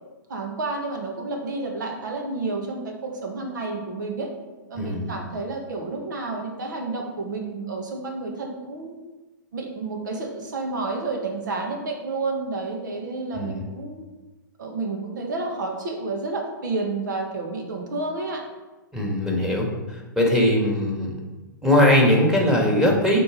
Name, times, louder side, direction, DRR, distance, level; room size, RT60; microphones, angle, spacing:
voice 1, 0.3-4.3 4.7-9.0 9.5-14.0 14.6-18.4, right 3 dB, 70° right, 2 dB, 1.7 m, -30 dB
voice 2, 4.8-5.1 13.3-13.6 18.9-21.2 21.6-23.2, left 1 dB, 5° right, -2 dB, 1.8 m, -20 dB
8.5 x 3.8 x 4.9 m, 1.2 s
hypercardioid pair, 110°, 11 cm